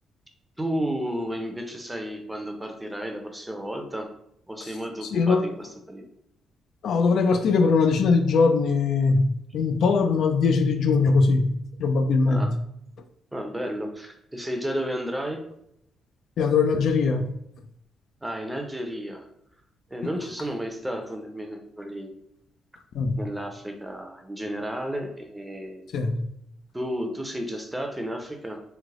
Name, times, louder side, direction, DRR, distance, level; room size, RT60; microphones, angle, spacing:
voice 1, 0.6-4.1 4.5-6.1 12.3-12.5 13.3-15.4 18.2-19.2 19.9-22.1 23.2-25.8 26.7-28.6, equal, 10° right, 0.6 m, -32 dB
voice 2, 5.1-5.5 6.8-11.5 11.8-12.5 16.4-17.3 22.9-23.2 25.9-26.2, left 4 dB, 70° left, 0.4 m, -21 dB
3.2 x 2.0 x 3.5 m
cardioid pair, 90°, 0 cm